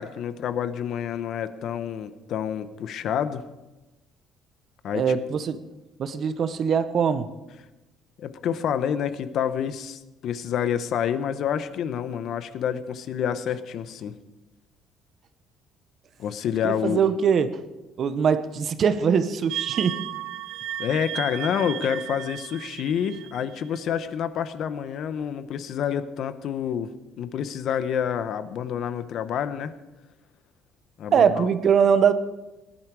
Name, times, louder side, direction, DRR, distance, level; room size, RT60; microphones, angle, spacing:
voice 1, 0.0-3.4 4.8-5.2 8.2-14.1 16.2-17.0 20.8-26.9 27.2-29.7 31.0-31.5, left 8 dB, 55° left, 12 dB, 0.9 m, -28 dB
voice 2, 4.9-5.6 6.0-7.3 16.6-17.6 18.0-20.0 31.1-32.1, right 7 dB, 40° right, 12 dB, 0.8 m, -22 dB
sound 1, 19.5-23.9, right 13 dB, 80° right, 0.6 m, -35 dB
18.5 x 11.0 x 4.8 m, 1.1 s
cardioid pair, 155°, 0 cm